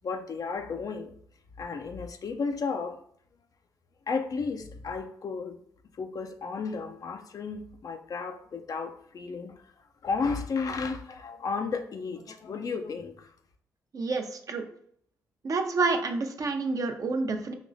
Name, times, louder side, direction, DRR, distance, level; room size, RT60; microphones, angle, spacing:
voice 1, 0.0-1.1 1.6-3.0 4.1-5.6 5.9-9.7 10.0-13.3, left 4 dB, 50° left, 0.5 m, -33 dB
voice 2, 13.9-14.6 15.4-17.5, right 3 dB, 50° right, 0.7 m, -28 dB
5.2 x 3.0 x 2.5 m
hypercardioid pair, 40°, 8 cm